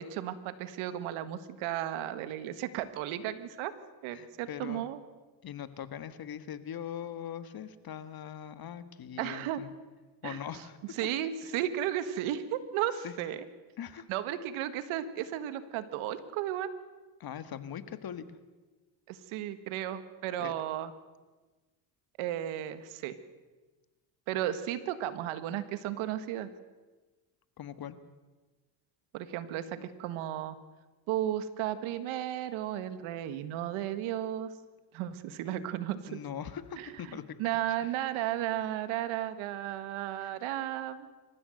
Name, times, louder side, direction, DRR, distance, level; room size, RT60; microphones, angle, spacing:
voice 1, 0.0-3.7 4.0-5.0 9.2-9.6 10.2-10.4 11.0-13.4 14.1-16.7 19.1-20.9 22.2-23.2 24.3-26.5 29.1-30.6 31.1-34.5 34.9-36.2 36.8-41.1, right 12 dB, 85° right, 12 dB, 1.7 m, -34 dB
voice 2, 4.1-4.9 5.4-9.7 10.2-10.8 11.4-11.5 13.0-13.1 13.8-14.1 17.2-18.4 20.4-20.5 27.6-28.0 36.1-37.3 37.8-38.0 40.2-40.3, left 9 dB, 50° left, 12 dB, 1.7 m, -41 dB
27.0 x 15.0 x 7.9 m, 1.2 s
cardioid pair, 95°, 47 cm